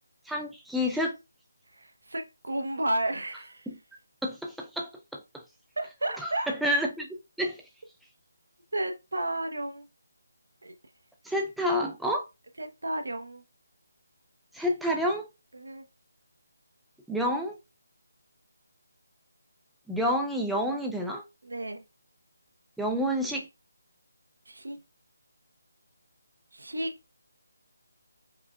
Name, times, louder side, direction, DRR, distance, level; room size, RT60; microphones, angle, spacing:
voice 1, 0.3-1.2 3.7-3.8 4.2-5.4 6.2-7.6 11.2-12.3 14.5-15.3 17.1-17.6 19.9-21.2 22.8-23.5, equal, ahead, 0.3 m, -29 dB
voice 2, 1.7-3.7 5.8-6.5 8.7-9.9 10.6-10.7 12.6-13.4 15.5-15.8 21.4-21.8 24.5-24.8 26.5-26.9, right 1 dB, 85° right, 0.8 m, -32 dB
4.8 x 2.2 x 2.3 m
figure-of-eight pair, 165°, 0 cm